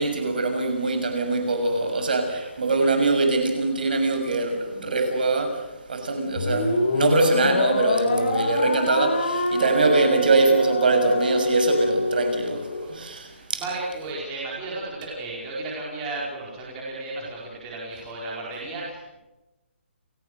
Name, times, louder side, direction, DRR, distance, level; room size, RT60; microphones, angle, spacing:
voice 1, 0.0-5.6 5.9-13.3 13.5-13.6, right 3 dB, 45° right, 5 dB, 6.4 m, -23 dB
sound 1, 6.4-12.9, left 2 dB, 45° left, 4.6 m, -26 dB
voice 2, 13.3-19.2, right 2 dB, 10° right, -4 dB, 4.6 m, -34 dB
30.0 x 17.5 x 6.6 m, 0.99 s
hypercardioid pair, 180°, 7 cm